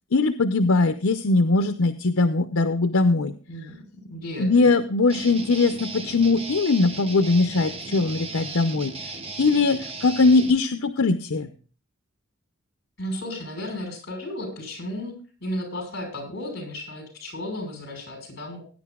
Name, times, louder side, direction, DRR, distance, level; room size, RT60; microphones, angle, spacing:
voice 1, 0.1-3.3 4.4-11.5, left 3 dB, 80° left, 8 dB, 0.7 m, -21 dB
voice 2, 3.5-3.8 4.1-4.7 13.0-18.6, left 1 dB, 50° left, 2 dB, 5.8 m, -34 dB
Guitar, 5.1-10.5, right 3 dB, 25° right, 1.1 m, -36 dB
19.5 x 10.0 x 2.4 m, 0.38 s
head